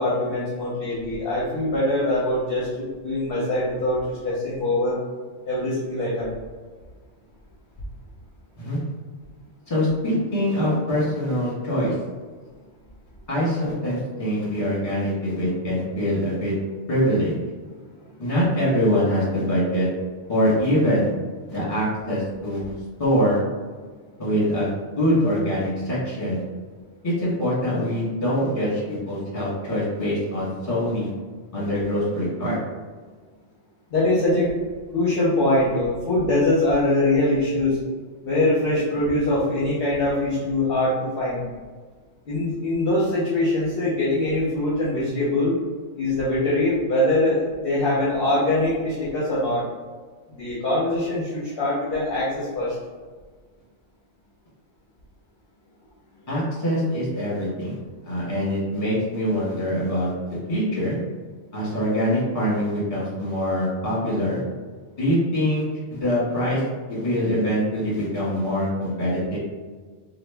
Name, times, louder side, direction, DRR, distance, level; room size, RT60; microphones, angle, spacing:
voice 1, 0.0-5.0 5.5-6.3 33.9-34.5 34.9-37.8 38.2-41.5 42.2-45.5 45.9-49.7 50.3-52.7, left 1 dB, 55° left, -7 dB, 0.9 m, -23 dB
voice 2, 9.7-11.9 13.3-16.5 16.9-17.3 18.2-19.9 20.3-21.1 21.5-22.7 23.0-23.4 24.2-26.4 27.0-31.1 31.5-32.6 56.3-57.8 58.0-61.0 61.5-64.4 65.0-65.6 65.9-66.6 66.9-69.4, equal, 30° left, -7 dB, 1.4 m, -24 dB
2.9 x 2.4 x 3.4 m, 1.5 s
omnidirectional pair, 1.2 m